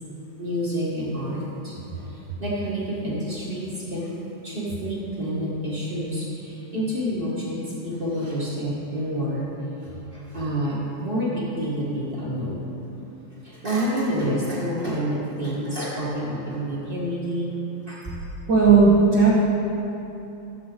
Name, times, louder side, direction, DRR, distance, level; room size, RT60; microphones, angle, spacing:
voice 1, 0.4-4.2 4.4-9.5 9.8-12.7 13.4-17.5 17.9-18.3, equal, 30° right, -8 dB, 1.1 m, -28 dB
voice 2, 18.5-19.3, right 5 dB, 70° right, -7 dB, 1.0 m, -15 dB
13.0 x 7.4 x 4.0 m, 3.0 s
omnidirectional pair, 3.7 m